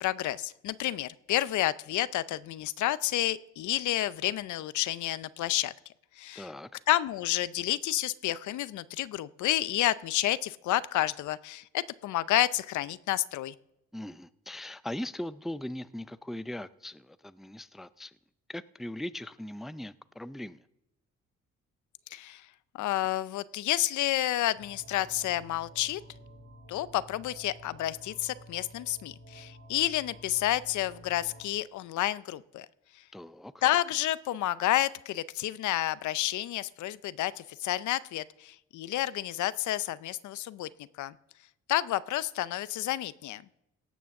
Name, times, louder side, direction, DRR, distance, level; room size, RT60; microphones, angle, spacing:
voice 1, 0.0-5.7 6.2-6.5 6.9-13.5 22.1-22.4 22.7-26.0 26.7-32.7 33.6-40.7 41.0-41.1 41.7-43.4, left 14 dB, 75° left, 0.6 m, -30 dB
voice 2, 6.4-6.7 13.9-18.1 18.5-20.6 33.1-33.5, left 1 dB, ahead, 0.4 m, -39 dB
sound 1, 24.5-31.4, equal, 80° right, 5.8 m, -51 dB
17.5 x 6.2 x 7.0 m
cardioid pair, 90°, 30 cm